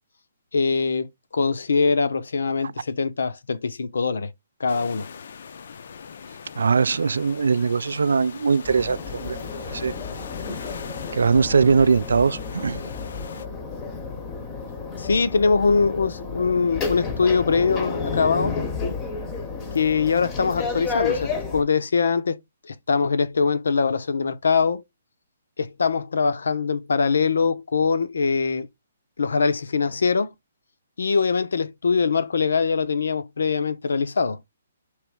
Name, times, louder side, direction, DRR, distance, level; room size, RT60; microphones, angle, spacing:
voice 1, 0.5-4.3 4.6-5.1 15.0-18.6 19.7-22.4 22.7-24.8 25.6-28.7 29.2-30.3 31.0-34.4, left 5 dB, 85° left, 0.7 m, -22 dB
sound 1, 4.7-13.5, left 6 dB, 55° left, 0.4 m, -40 dB
voice 2, 6.6-9.4 9.7-9.9 11.1-12.8, right 5 dB, 85° right, 0.3 m, -21 dB
sound 2, 8.6-21.6, left 4 dB, 15° left, 0.7 m, -31 dB
3.3 x 3.0 x 4.7 m
hypercardioid pair, 175°, 0 cm